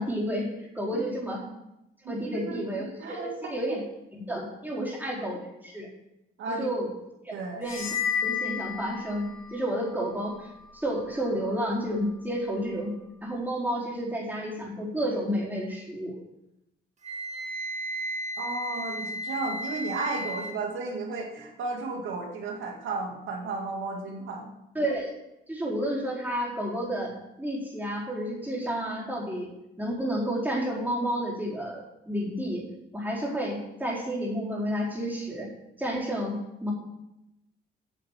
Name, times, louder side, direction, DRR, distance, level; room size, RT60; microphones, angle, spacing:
voice 1, 0.0-1.4 2.1-3.8 4.1-5.9 6.5-6.9 7.2-8.0 8.2-12.9 13.2-16.1 24.7-25.1 25.5-27.1 27.4-29.5 29.8-31.8 32.1-32.7 32.9-35.5 35.8-36.7, equal, 10° right, -4 dB, 4.5 m, -31 dB
voice 2, 2.0-2.6 3.0-3.5 4.7-4.9 6.4-6.7 7.3-7.7 18.4-24.5, right 3 dB, 80° right, 2 dB, 2.3 m, -34 dB
sound 1, 7.6-9.5, left 7 dB, 70° left, 4.0 m, -31 dB
Wind instrument woodwind instrument, 17.0-20.5, equal, 35° right, 2.2 m, -34 dB
9.2 x 7.1 x 7.6 m, 0.89 s
cardioid pair, 90°, 20 cm